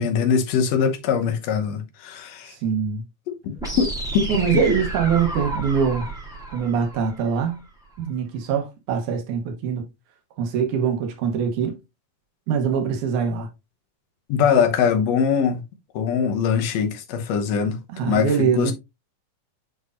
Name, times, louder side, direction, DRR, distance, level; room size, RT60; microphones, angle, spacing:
voice 1, 0.0-2.5 3.3-3.9 4.1-4.3 14.3-15.6 16.0-18.7, left 7 dB, 65° left, 2.0 m, -22 dB
voice 2, 2.5-3.0 4.3-6.1 6.5-7.6 8.0-9.8 10.4-11.8 12.5-13.5 17.9-18.7, right 6 dB, 85° right, 2.6 m, -23 dB
sound 1, 3.6-7.6, right 2 dB, ahead, 2.7 m, -31 dB
7.9 x 5.3 x 2.5 m
omnidirectional pair, 3.4 m